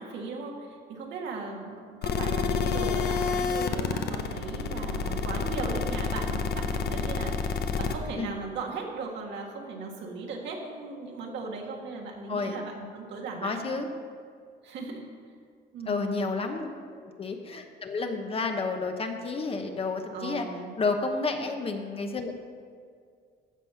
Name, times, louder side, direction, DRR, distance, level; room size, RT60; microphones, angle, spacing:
voice 1, 0.0-13.8 14.6-15.1 15.7-16.0 20.1-20.7, right 4 dB, 75° right, 0 dB, 1.8 m, -37 dB
sound 1, 2.0-7.9, left 5 dB, 65° left, 0.8 m, -28 dB
voice 2, 13.4-13.9 15.9-20.5 20.8-22.3, left 3 dB, 30° left, 5 dB, 0.9 m, -31 dB
14.5 x 5.4 x 5.7 m, 2.1 s
cardioid pair, 125°, 18 cm